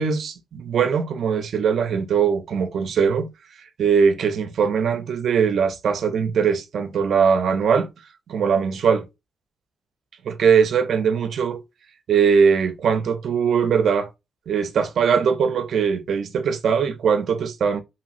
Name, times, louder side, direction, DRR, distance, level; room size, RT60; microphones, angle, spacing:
voice 1, 0.0-3.3 3.8-7.9 8.3-9.0 10.2-11.6 12.1-14.1 14.5-17.8, right 6 dB, 65° right, 0.5 m, -20 dB
3.0 x 2.8 x 2.5 m
wide cardioid pair, 140°, 0 cm